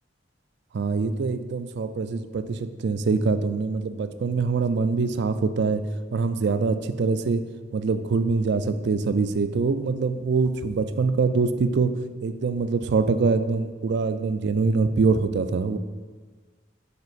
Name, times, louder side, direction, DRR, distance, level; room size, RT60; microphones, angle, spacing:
voice 1, 0.7-5.8 6.1-7.4 7.7-11.9 12.2-15.8, right 4 dB, 60° right, 11 dB, 0.4 m, -24 dB
6.8 x 4.4 x 4.1 m, 1.4 s
head